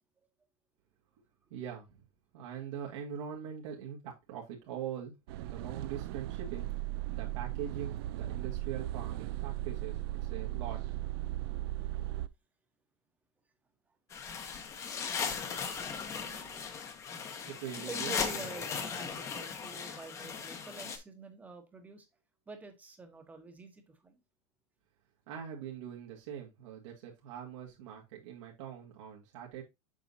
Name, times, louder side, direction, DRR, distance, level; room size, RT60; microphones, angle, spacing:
voice 1, 1.5-2.0 2.3-5.1 5.4-6.7 7.1-10.8 17.5-18.1 18.4-18.5 25.3-29.6, right 9 dB, 80° right, 1.9 m, -42 dB
sound 1, 5.3-12.3, right 15 dB, 55° right, 0.4 m, -37 dB
sound 2, 14.1-21.0, left 6 dB, 20° left, 0.8 m, -38 dB
voice 2, 15.9-16.7 17.9-22.1 22.5-24.2, right 3 dB, 10° right, 1.0 m, -47 dB
7.3 x 5.5 x 2.7 m
supercardioid pair, 180°, 15 cm